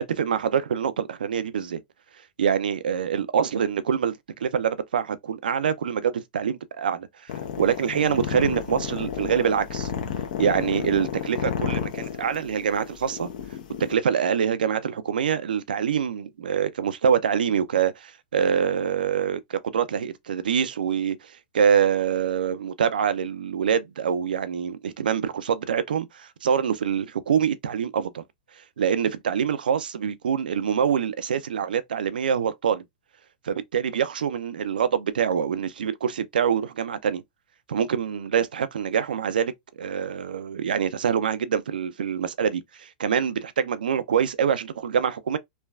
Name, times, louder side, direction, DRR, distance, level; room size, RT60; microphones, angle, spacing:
voice 1, 0.0-1.8 2.4-7.3 7.6-9.9 10.4-13.3 13.8-28.2 28.8-32.8 33.4-37.2 37.7-39.5 39.8-45.4, right 7 dB, 85° right, 0.4 m, -25 dB
sound 1, 7.3-13.9, left 8 dB, 65° left, 0.7 m, -31 dB
3.2 x 2.2 x 2.3 m
hypercardioid pair, 125°, 5 cm